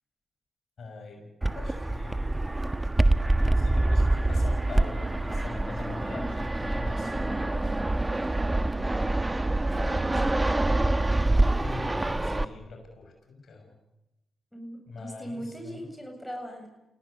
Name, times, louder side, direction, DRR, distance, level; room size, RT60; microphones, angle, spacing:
voice 1, 0.8-2.4 3.6-7.7 11.6-13.8 14.9-15.8, left 3 dB, 65° left, 3 dB, 6.6 m, -43 dB
Fixed-wing aircraft airplane, 1.4-12.4, right 2 dB, 20° right, 1.4 m, -25 dB
voice 2, 9.7-10.6 14.5-16.7, equal, 5° left, 3 dB, 7.7 m, -40 dB
27.5 x 17.5 x 8.4 m, 0.92 s
supercardioid pair, 55°, 0 cm